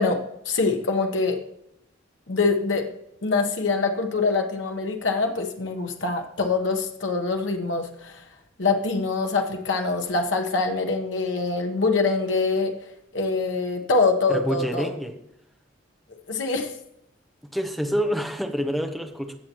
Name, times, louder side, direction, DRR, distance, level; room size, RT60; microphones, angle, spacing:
voice 1, 0.0-1.4 2.3-2.9 3.2-8.2 8.6-12.7 13.1-14.9 16.3-16.7, left 3 dB, 90° left, 4 dB, 1.1 m, -24 dB
voice 2, 14.3-15.2 17.5-19.4, equal, ahead, 4 dB, 0.8 m, -27 dB
16.0 x 6.9 x 3.0 m, 0.77 s
head